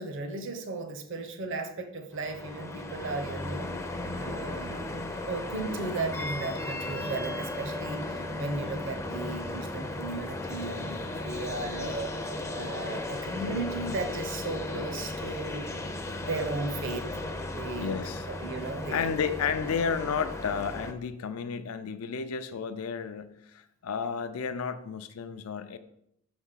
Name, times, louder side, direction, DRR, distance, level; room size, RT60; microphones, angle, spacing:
voice 1, 0.0-3.7 4.1-12.1 12.5-15.6 16.2-17.1 17.5-17.9 18.3-19.1, right 3 dB, 60° right, 7 dB, 0.8 m, -35 dB
sound 1, 2.1-20.9, left 2 dB, 15° left, 0.4 m, -36 dB
voice 2, 4.0-4.4 17.8-18.3 18.9-25.8, left 6 dB, 75° left, 10 dB, 0.4 m, -32 dB
6.4 x 3.5 x 5.5 m, 0.77 s
head